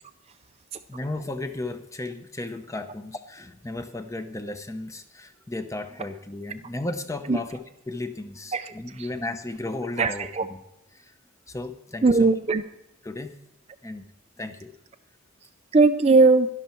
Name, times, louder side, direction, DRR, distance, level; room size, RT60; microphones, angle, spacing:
voice 1, 0.9-7.6 7.9-10.3 11.5-12.3 13.0-13.4 13.8-14.0 14.4-14.7, left 2 dB, 15° left, 8 dB, 0.7 m, -34 dB
voice 2, 8.5-9.1 10.0-10.5 12.0-12.6 15.7-16.5, right 3 dB, 30° right, 9 dB, 0.4 m, -19 dB
11.5 x 11.5 x 4.4 m, 0.92 s
head